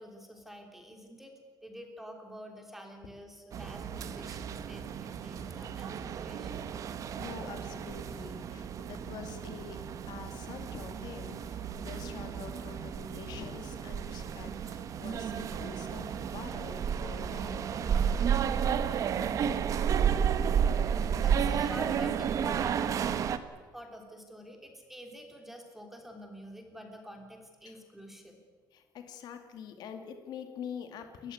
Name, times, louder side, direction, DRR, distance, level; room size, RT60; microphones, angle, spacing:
voice 1, 0.0-1.3 1.6-6.6 21.2-22.8 23.7-28.4, equal, 5° right, 3 dB, 3.3 m, -47 dB
sound 1, 3.5-23.4, right 8 dB, 45° right, 1.2 m, -32 dB
voice 2, 7.2-9.8 10.1-18.0 27.6-27.8 28.7-31.3, left 7 dB, 60° left, 6 dB, 2.3 m, -45 dB
29.5 x 14.5 x 9.5 m, 1.4 s
cardioid pair, 180°, 8 cm